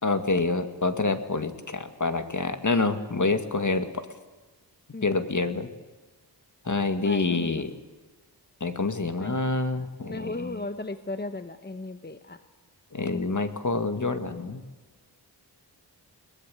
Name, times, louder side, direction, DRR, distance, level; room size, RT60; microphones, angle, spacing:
voice 1, 0.0-3.9 5.0-5.7 6.7-7.7 8.6-10.6 12.9-14.6, left 3 dB, 45° left, 8 dB, 2.1 m, -27 dB
voice 2, 4.9-5.3 7.0-7.5 9.2-9.4 10.1-12.4, left 2 dB, 25° left, 9 dB, 1.0 m, -36 dB
22.5 x 19.5 x 7.8 m, 1.2 s
wide cardioid pair, 95°, 42 cm